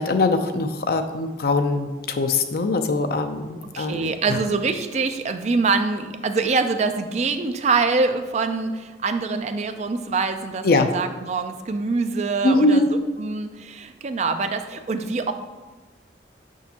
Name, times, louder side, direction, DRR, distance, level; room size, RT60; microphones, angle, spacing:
voice 1, 0.0-4.1 10.6-10.9 12.4-12.9, left 2 dB, 55° left, 7 dB, 0.5 m, -21 dB
voice 2, 3.7-15.3, right 4 dB, 40° right, 8 dB, 0.4 m, -24 dB
6.2 x 5.8 x 2.8 m, 1.3 s
head